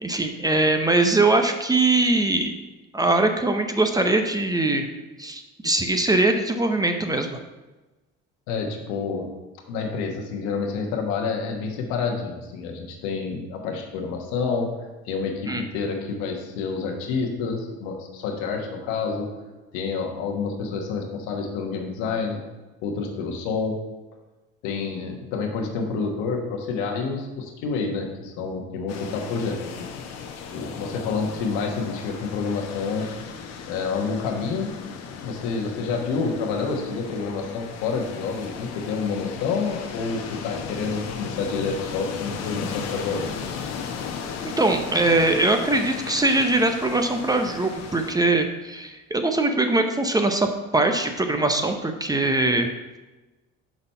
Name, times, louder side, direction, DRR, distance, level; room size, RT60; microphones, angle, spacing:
voice 1, 0.0-2.5 2.9-4.9 5.2-7.4 15.5-15.6 44.6-50.5 50.7-52.7, right 2 dB, 15° right, 5 dB, 0.7 m, -22 dB
voice 2, 8.5-9.3 9.7-14.7 15.0-19.3 19.7-22.4 22.8-23.8 24.6-29.8 30.5-33.1 33.7-34.7 35.2-43.3, left 4 dB, 75° left, 2 dB, 1.3 m, -28 dB
Pacific Ocean, 28.9-48.1, left 6 dB, 60° left, 1.0 m, -36 dB
5.9 x 4.0 x 5.5 m, 1.1 s
supercardioid pair, 80°, 29 cm